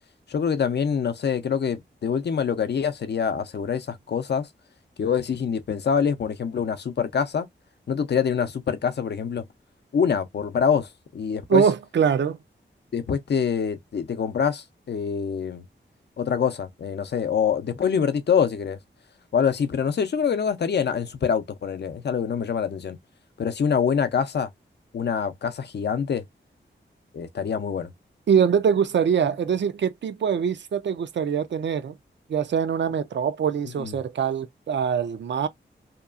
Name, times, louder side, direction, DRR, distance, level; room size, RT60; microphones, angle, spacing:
voice 1, 0.3-4.5 5.0-7.5 7.9-9.4 9.9-11.6 12.9-15.6 16.2-18.8 19.3-23.0 23.4-24.5 24.9-26.2 27.1-27.9 33.8-34.0, left 7 dB, 60° left, 0.5 m, -25 dB
voice 2, 11.5-12.4 28.3-31.9 32.3-35.5, right 7 dB, 65° right, 0.4 m, -23 dB
2.9 x 2.3 x 2.3 m
wide cardioid pair, 85°, 20 cm